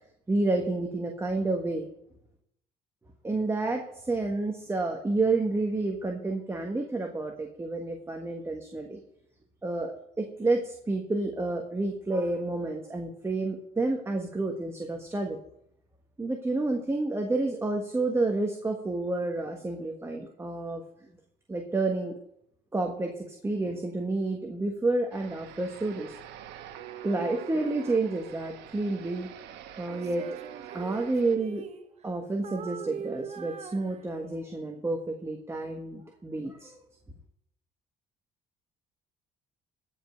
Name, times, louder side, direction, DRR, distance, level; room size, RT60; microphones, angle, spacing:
voice 1, 0.3-1.9 3.2-9.0 9.6-15.4 16.2-20.8 21.5-22.1 22.7-26.2 27.0-29.3 29.8-30.2 30.7-31.6 32.0-36.8, right 2 dB, 15° right, 2 dB, 1.5 m, -30 dB
sound 1, 25.1-31.4, right 11 dB, 85° right, 1.1 m, -45 dB
Female singing, 29.9-32.1 32.4-34.5, right 7 dB, 40° right, 0.9 m, -42 dB
14.5 x 5.4 x 6.4 m, 0.75 s
cardioid pair, 110°, 17 cm